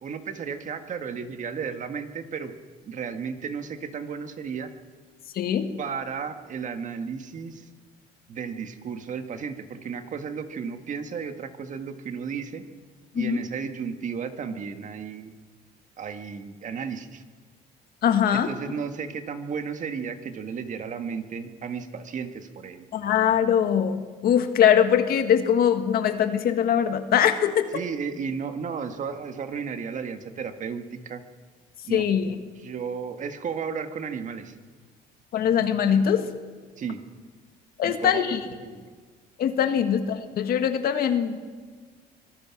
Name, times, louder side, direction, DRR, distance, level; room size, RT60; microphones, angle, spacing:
voice 1, 0.0-2.5 2.9-4.7 5.8-7.7 8.3-12.7 13.1-15.3 16.0-17.2 18.3-23.0 27.7-31.2 31.9-32.0 32.6-34.5 36.8-37.0 37.8-38.9 39.8-39.9, right 6 dB, 50° right, 8 dB, 1.7 m, -34 dB
voice 2, 5.4-5.7 13.2-13.4 18.0-18.5 22.9-27.7 31.9-32.3 35.3-36.3 37.8-38.4 39.4-41.4, left 8 dB, 65° left, 8 dB, 1.7 m, -22 dB
24.5 x 18.5 x 6.0 m, 1.5 s
cardioid pair, 110°, 17 cm